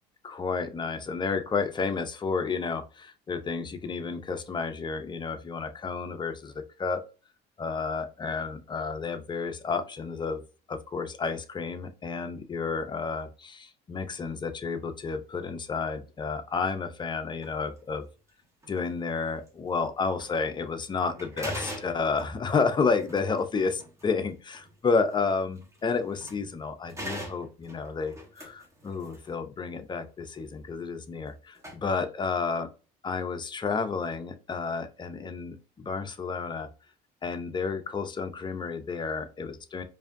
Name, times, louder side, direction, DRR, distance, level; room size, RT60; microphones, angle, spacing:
voice 1, 0.2-6.5 6.8-7.0 7.6-10.4 10.7-18.0 18.7-32.7 33.0-36.7 37.2-39.8, left 4 dB, 25° left, 8 dB, 0.5 m, -31 dB
sound 1, 17.4-17.6 18.6-18.9 19.5-19.6 20.1-20.4 20.7-20.8 21.1-26.6 26.9-29.3 31.3-31.4 31.5-31.8, equal, 15° right, 1.3 m, -42 dB
4.8 x 2.6 x 2.5 m, 0.33 s
supercardioid pair, 100°, 18 cm